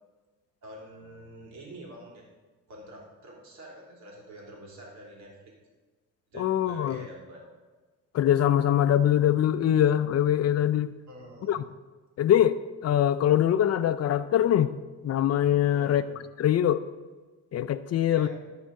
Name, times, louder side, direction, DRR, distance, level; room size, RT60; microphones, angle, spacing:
voice 1, 0.6-2.2 2.7-5.3 6.3-7.5 11.1-11.5 15.6-16.0 18.1-18.3, right 1 dB, 65° right, -2 dB, 3.3 m, -46 dB
voice 2, 6.3-7.0 8.1-10.9 11.5-11.6 12.2-14.7 15.0-16.0 16.4-16.8 17.5-18.3, left 10 dB, 55° left, 13 dB, 0.5 m, -23 dB
14.0 x 4.8 x 5.3 m, 1.3 s
cardioid pair, 90°, 30 cm